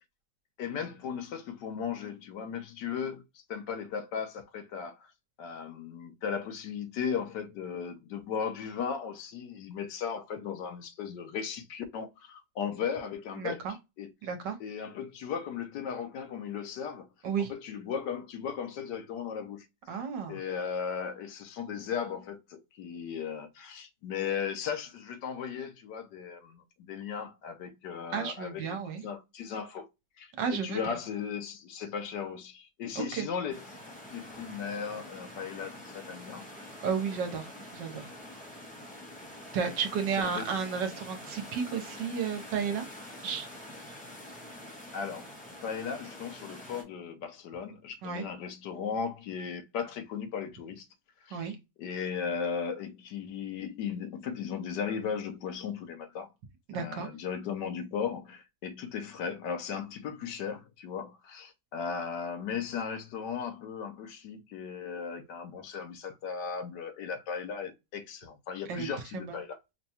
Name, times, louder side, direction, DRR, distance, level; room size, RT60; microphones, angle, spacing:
voice 1, 0.6-3.2 3.5-5.1 5.4-14.1 14.6-17.1 17.5-20.0 20.3-29.9 30.2-33.8 34.1-36.4 40.3-40.5 44.9-45.3 45.6-50.9 51.2-51.5 51.8-56.3 56.7-69.6, left 7 dB, 70° left, 1.2 m, -36 dB
voice 2, 13.4-13.7 14.2-14.6 17.2-17.5 19.9-20.4 28.1-29.0 30.4-31.0 32.9-33.3 36.8-38.0 39.5-42.8 43.2-43.5 48.0-48.2 51.3-51.6 56.7-57.1 68.7-68.9 69.1-69.2, right 6 dB, 70° right, 1.4 m, -32 dB
sound 1, 33.5-46.8, left 1 dB, 5° left, 1.1 m, -46 dB
5.2 x 2.3 x 2.8 m
omnidirectional pair, 2.1 m